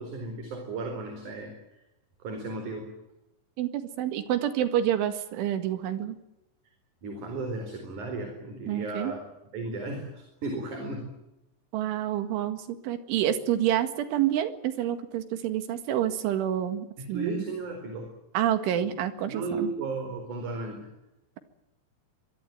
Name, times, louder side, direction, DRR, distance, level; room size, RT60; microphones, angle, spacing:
voice 1, 0.0-1.5 2.2-3.0 7.0-9.2 9.5-11.1 17.0-18.1 19.3-20.9, right 3 dB, 40° right, 5 dB, 5.4 m, -35 dB
voice 2, 3.6-6.2 8.7-9.1 11.7-17.4 18.3-19.7, right 11 dB, 85° right, 9 dB, 4.3 m, -28 dB
24.5 x 22.0 x 9.1 m, 0.92 s
omnidirectional pair, 5.5 m